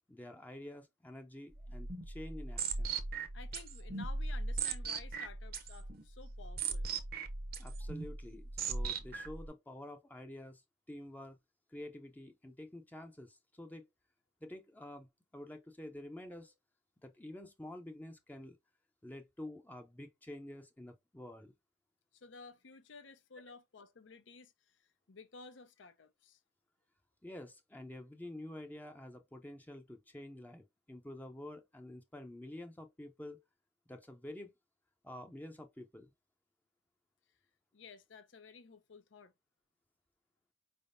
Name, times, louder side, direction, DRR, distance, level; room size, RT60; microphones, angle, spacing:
voice 1, 0.1-3.0 7.6-10.6 10.9-11.4 11.7-13.9 14.4-16.5 17.0-18.6 19.0-21.5 27.2-33.4 33.9-34.5 35.0-36.1, left 1 dB, 10° left, 0.5 m, -49 dB
sound 1, 1.5-9.5, right 4 dB, 55° right, 0.7 m, -39 dB
voice 2, 3.3-6.9 22.1-26.4 37.7-39.3, left 4 dB, 85° left, 0.7 m, -54 dB
4.7 x 3.5 x 2.5 m
head